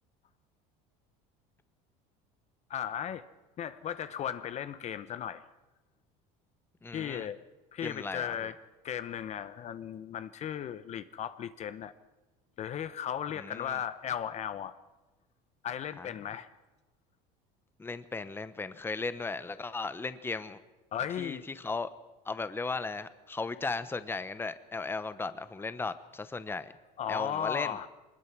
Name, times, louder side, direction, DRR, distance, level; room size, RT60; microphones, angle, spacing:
voice 1, 2.7-3.2 3.6-5.4 6.9-7.4 7.7-8.6 8.8-11.9 12.6-14.7 15.6-16.5 20.9-21.5 27.0-27.9, left 9 dB, 40° left, 13 dB, 0.9 m, -36 dB
voice 2, 6.8-7.3 7.8-8.3 13.3-13.8 16.0-16.1 17.8-20.6 21.2-21.9 22.2-26.7 27.1-27.8, left 3 dB, 15° left, 13 dB, 1.0 m, -36 dB
22.5 x 20.5 x 6.1 m, 1.1 s
supercardioid pair, 115°, 17 cm